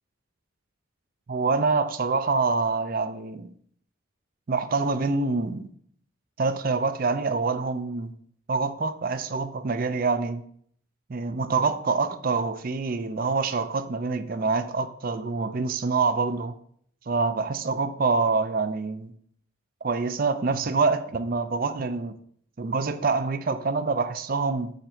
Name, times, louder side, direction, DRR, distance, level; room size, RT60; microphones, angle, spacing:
voice 1, 1.3-3.5 4.5-5.7 6.4-8.1 8.5-10.4 11.1-16.5 17.1-19.1 19.8-22.2 22.6-24.7, right 4 dB, 45° right, 12 dB, 0.5 m, -26 dB
9.2 x 3.9 x 4.4 m, 0.63 s
head